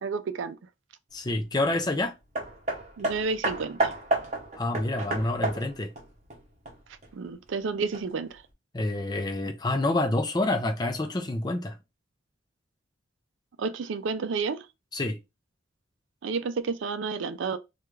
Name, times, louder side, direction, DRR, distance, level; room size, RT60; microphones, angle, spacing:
voice 1, 0.0-0.6 3.0-3.9 7.1-8.4 13.6-14.7 16.2-17.6, right 4 dB, 80° right, 0.4 m, -30 dB
voice 2, 1.1-2.1 4.6-5.9 8.7-11.8 14.9-15.2, left 2 dB, 20° left, 0.4 m, -27 dB
Hammer, 2.4-7.1 7.9-8.0, right 2 dB, 35° right, 0.8 m, -31 dB
3.4 x 2.4 x 3.1 m
head